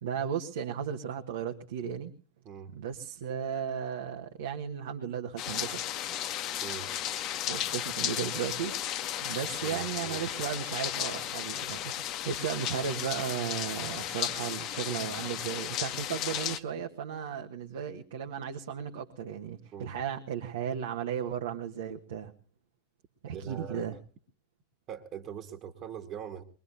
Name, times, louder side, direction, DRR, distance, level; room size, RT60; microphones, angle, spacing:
voice 1, 0.0-2.1 2.7-5.8 7.5-8.7 9.2-22.3 23.2-24.0, right 8 dB, 60° right, 4 dB, 1.3 m, -35 dB
sound 1, 5.4-16.6, left 11 dB, 35° left, 1.1 m, -34 dB
voice 2, 6.6-6.9 9.6-10.2 19.7-19.9 23.3-23.9 24.9-26.4, right 8 dB, 35° right, 4 dB, 1.8 m, -42 dB
22.5 x 22.5 x 2.6 m, 0.39 s
figure-of-eight pair, 90°, 0 cm